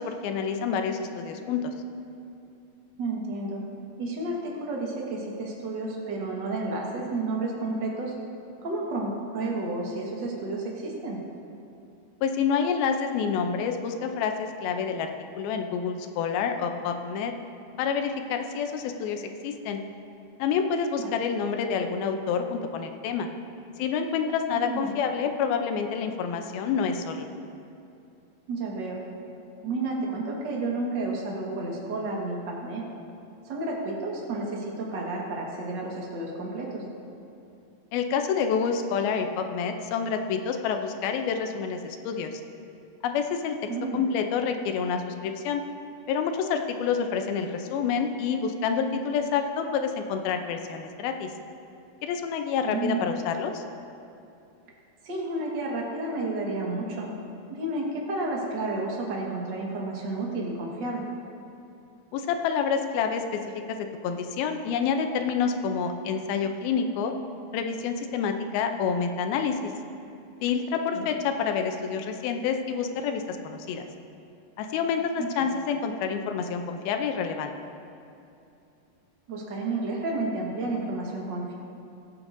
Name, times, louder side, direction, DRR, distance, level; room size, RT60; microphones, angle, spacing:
voice 1, 0.0-1.7 12.2-15.1 15.4-17.3 17.8-19.8 20.4-23.3 23.8-27.3 37.9-42.4 43.0-43.6 43.9-45.6 46.1-51.3 52.0-53.6 62.1-63.4 63.7-67.1 67.5-69.7 70.4-73.9 74.6-77.5, left 6 dB, 85° left, 5 dB, 2.6 m, -28 dB
voice 2, 3.0-3.6 4.0-8.1 8.6-11.2 21.0-21.1 24.5-24.9 28.5-29.0 29.6-32.9 33.4-36.8 43.7-44.0 52.6-53.1 55.0-57.1 57.5-61.1 70.9-71.1 75.2-75.5 79.3-81.6, right 2 dB, 50° right, -2 dB, 1.3 m, -31 dB
21.0 x 8.7 x 2.6 m, 2.7 s
omnidirectional pair, 4.3 m